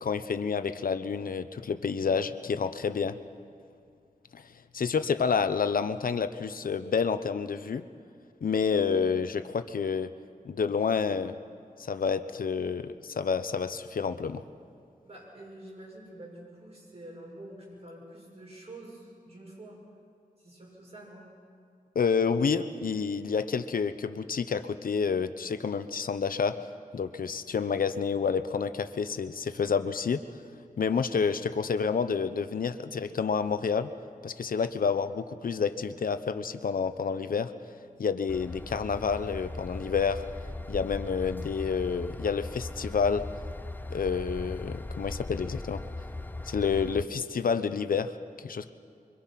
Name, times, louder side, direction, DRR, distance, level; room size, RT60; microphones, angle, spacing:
voice 1, 0.0-3.2 4.3-4.4 4.7-7.8 8.4-10.1 10.4-11.4 11.8-14.4 21.9-26.6 26.9-30.2 30.8-33.9 34.2-37.5 38.0-40.2 40.7-43.3 43.9-45.8 46.5-48.1 48.4-48.7, left 6 dB, 80° left, 10 dB, 0.9 m, -29 dB
voice 2, 15.0-19.8 20.4-21.3, right 1 dB, 45° right, -3 dB, 7.3 m, -47 dB
Train / Engine, 38.3-47.0, left 2 dB, 15° left, 0.6 m, -39 dB
26.0 x 24.0 x 5.9 m, 2.4 s
wide cardioid pair, 95°, 14 cm